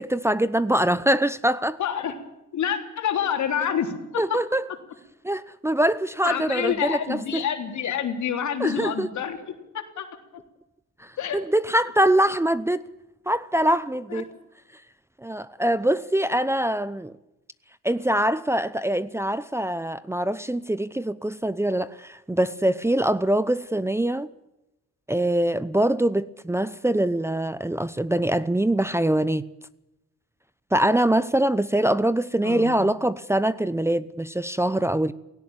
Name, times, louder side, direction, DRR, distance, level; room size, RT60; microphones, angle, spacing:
voice 1, 0.0-1.8 4.2-4.6 5.2-7.4 8.6-9.1 11.0-12.8 13.3-14.2 15.2-17.1 17.8-24.3 25.1-29.5 30.7-35.1, right 1 dB, 10° right, 0.7 m, -23 dB
voice 2, 1.8-2.2 2.5-4.4 6.2-10.1 10.3-10.4 11.2-11.4 14.1-14.2 32.4-32.9, left 8 dB, 70° left, 3.7 m, -28 dB
17.5 x 16.5 x 9.1 m
cardioid pair, 90°, 30 cm